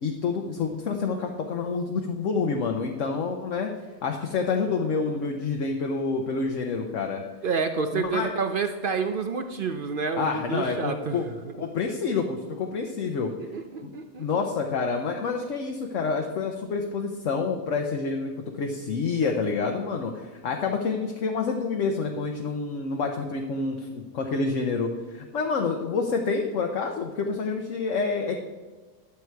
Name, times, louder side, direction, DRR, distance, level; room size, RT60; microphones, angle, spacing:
voice 1, 0.0-3.7 4.0-7.2 7.9-8.3 10.1-11.2 11.6-13.3 13.8-13.9 14.2-28.4, left 4 dB, 55° left, 3 dB, 1.1 m, -28 dB
voice 2, 7.4-11.5 13.5-14.3, right 5 dB, 65° right, 7 dB, 0.5 m, -29 dB
11.5 x 7.8 x 4.6 m, 1.3 s
omnidirectional pair, 1.7 m